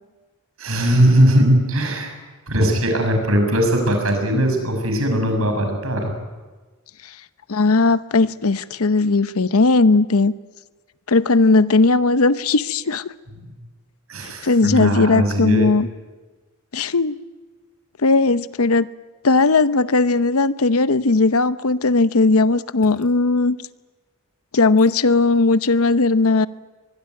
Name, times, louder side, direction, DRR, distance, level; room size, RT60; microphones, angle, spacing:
voice 1, 0.6-2.1 2.5-6.1 13.4-13.5 14.1-15.7, equal, 75° right, 6.4 m, -19 dB
voice 2, 7.5-10.3 11.1-13.0 14.4-15.9 16.7-17.1 18.0-18.9 19.2-23.6 24.5-26.5, left 3 dB, 85° left, 0.9 m, -17 dB
24.5 x 21.0 x 9.5 m
head